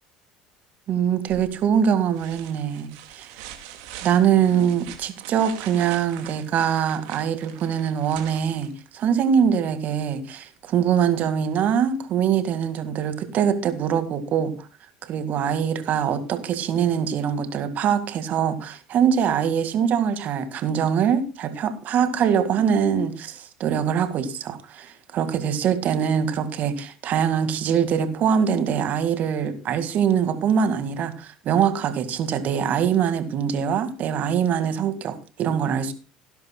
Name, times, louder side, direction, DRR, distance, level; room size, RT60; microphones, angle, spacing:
voice 1, 0.9-3.3 4.0-14.5 15.0-35.9, right 8 dB, 55° right, 2.0 m, -23 dB
sound 1, 1.3-1.7 2.1-9.1 10.9-11.0, right 11 dB, 70° right, 2.3 m, -42 dB
18.0 x 10.5 x 2.3 m
hypercardioid pair, 70°, 3 cm